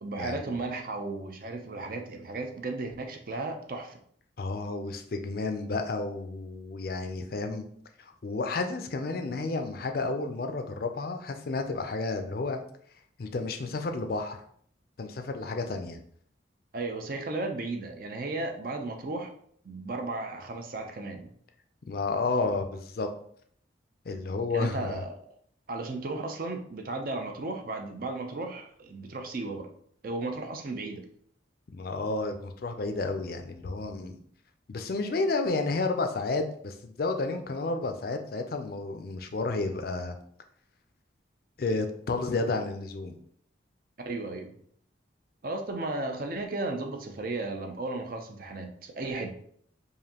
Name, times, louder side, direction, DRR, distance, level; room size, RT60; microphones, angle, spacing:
voice 1, 0.0-4.0 16.7-19.3 19.6-21.3 24.5-25.1 25.7-29.7 30.0-31.0 44.1-44.6 45.4-49.3, right 2 dB, 50° right, 4 dB, 0.5 m, -35 dB
voice 2, 4.4-7.7 8.0-12.6 13.2-14.4 15.0-16.0 21.9-23.1 24.1-25.0 31.7-34.2 34.7-40.1 41.6-43.2, left 3 dB, 50° left, 6 dB, 0.4 m, -31 dB
4.9 x 2.6 x 2.8 m, 0.62 s
head